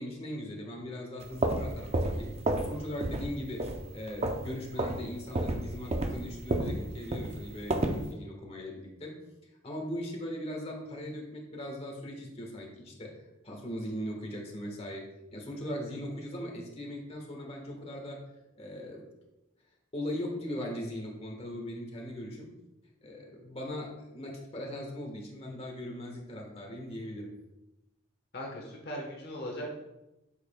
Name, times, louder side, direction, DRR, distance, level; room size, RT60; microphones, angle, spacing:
voice 1, 0.0-2.4 2.6-9.2 9.6-18.2 18.6-19.0 19.9-22.5 23.0-27.3, left 1 dB, 30° left, -1 dB, 1.3 m, -39 dB
sound 1, 1.2-2.7 3.0-3.3 3.6-4.5 4.8-5.0 5.3-8.0, right 1 dB, 30° right, 0.6 m, -30 dB
voice 2, 28.3-29.7, equal, 50° left, -1 dB, 1.1 m, -38 dB
8.1 x 6.6 x 2.2 m, 0.94 s
head